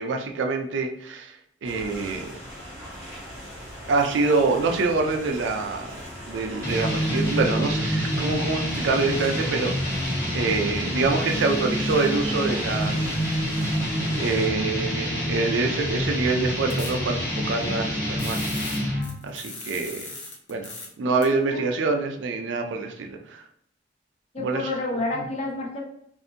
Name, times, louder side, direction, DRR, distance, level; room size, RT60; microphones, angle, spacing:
voice 1, 0.0-1.4 1.6-2.3 3.9-5.9 6.3-9.7 10.0-13.2 14.1-18.5 18.9-20.1 20.5-20.7 21.0-23.4 24.4-24.7 25.1-25.3, right 3 dB, 85° right, 4 dB, 0.4 m, -26 dB
sound 1, 1.6-14.5, equal, 10° right, 1.2 m, -40 dB
sound 2, 6.6-19.2, equal, 15° left, 1.3 m, -27 dB
sound 3, 16.7-16.9 18.2-20.9 21.2-21.3, left 3 dB, 70° left, 0.8 m, -38 dB
voice 2, 24.3-25.8, left 2 dB, 35° left, -1 dB, 0.7 m, -29 dB
2.6 x 2.5 x 2.6 m, 0.69 s
head